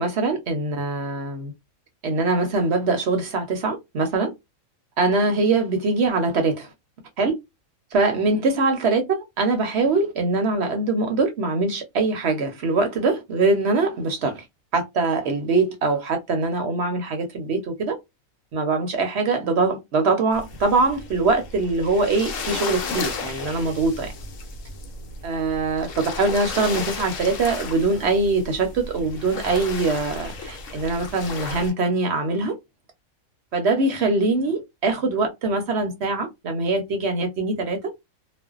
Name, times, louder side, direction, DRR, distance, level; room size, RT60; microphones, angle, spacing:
voice 1, 0.0-1.5 2.0-4.3 5.0-6.7 7.2-7.3 7.9-14.4 14.7-18.0 18.5-24.1 25.2-25.9 26.2-32.6 33.5-37.8, right 3 dB, 60° right, 0.8 m, -23 dB
sound 1, 20.3-31.7, left 4 dB, 70° left, 1.0 m, -34 dB
2.5 x 2.1 x 2.4 m
omnidirectional pair, 1.4 m